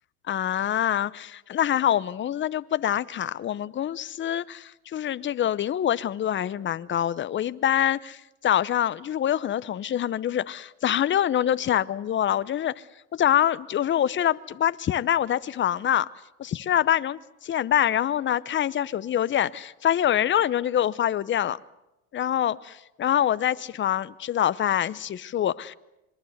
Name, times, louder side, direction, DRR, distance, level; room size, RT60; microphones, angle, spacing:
voice 1, 0.3-12.8 13.1-16.1 16.4-21.6 22.1-25.7, left 10 dB, 25° left, 0.8 m, -25 dB
26.0 x 22.5 x 8.0 m
supercardioid pair, 105°, 43 cm